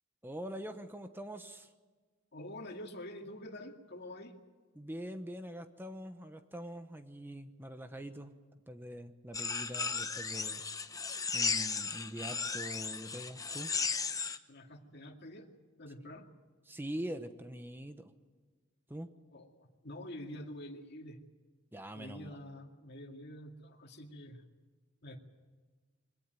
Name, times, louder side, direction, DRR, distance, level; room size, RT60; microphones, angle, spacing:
voice 1, 0.2-1.7 4.7-8.3 8.7-10.6 11.3-13.7 16.0-16.1 16.7-18.1 18.9-19.1 21.7-22.4, right 1 dB, 10° right, 8 dB, 1.0 m, -44 dB
voice 2, 2.3-4.3 14.5-15.5 15.8-16.3 19.3-21.2 21.9-24.4 25.0-25.2, left 1 dB, 55° left, 4 dB, 2.2 m, -47 dB
sound 1, 9.3-14.4, left 5 dB, 15° left, 0.9 m, -35 dB
23.0 x 17.0 x 9.2 m, 1.4 s
head